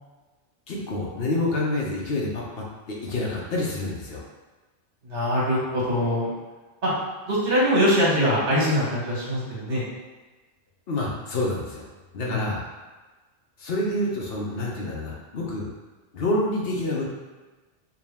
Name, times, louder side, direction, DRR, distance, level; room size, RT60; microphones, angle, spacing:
voice 1, 0.7-4.2 10.9-11.8 12.1-12.6 13.6-15.7 16.1-17.0, left 2 dB, 60° left, -2 dB, 0.9 m, -28 dB
voice 2, 5.0-6.3 6.8-6.9 7.3-9.8 12.3-12.5, equal, 75° right, -6 dB, 1.6 m, -23 dB
4.7 x 2.4 x 3.5 m, 1.3 s
omnidirectional pair, 1.2 m